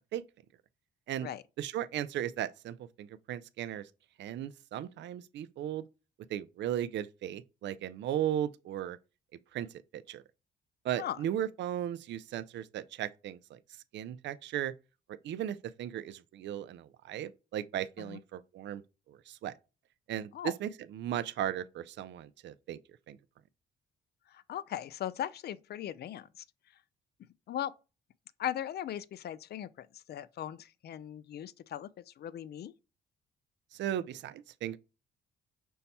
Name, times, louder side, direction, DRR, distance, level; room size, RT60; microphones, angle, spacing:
voice 1, 1.6-3.9 4.2-5.9 6.3-9.0 9.5-9.7 9.9-10.2 10.8-13.6 13.9-14.7 15.2-18.8 19.1-19.5 20.1-22.8 23.1-23.2 33.7-34.8, right 11 dB, 65° right, 0.4 m, -36 dB
voice 2, 24.3-26.4 27.5-27.7 28.4-32.7, left 11 dB, 55° left, 0.4 m, -39 dB
5.5 x 2.1 x 4.1 m
cardioid pair, 90°, 20 cm